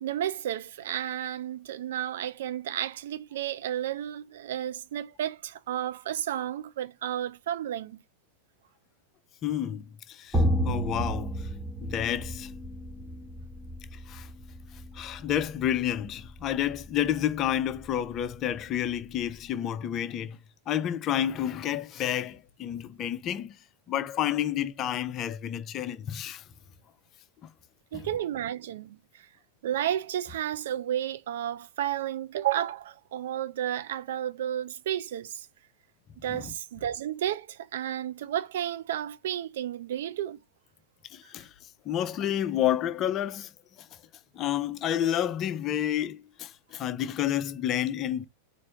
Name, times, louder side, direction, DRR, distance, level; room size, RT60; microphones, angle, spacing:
voice 1, 0.0-8.0 27.9-29.3 29.6-35.5 36.2-40.4, right 11 dB, 60° right, 0.4 m, -32 dB
voice 2, 9.4-11.5 11.8-12.5 14.1-14.3 14.9-20.4 20.7-23.6 23.9-26.4 27.9-28.0 36.3-36.5 41.1-41.5 41.9-43.5 44.3-48.2, left 11 dB, 30° left, 0.5 m, -30 dB
sound 1, 10.3-19.4, equal, 5° right, 0.8 m, -33 dB
4.3 x 2.5 x 4.5 m
figure-of-eight pair, 90°, 0 cm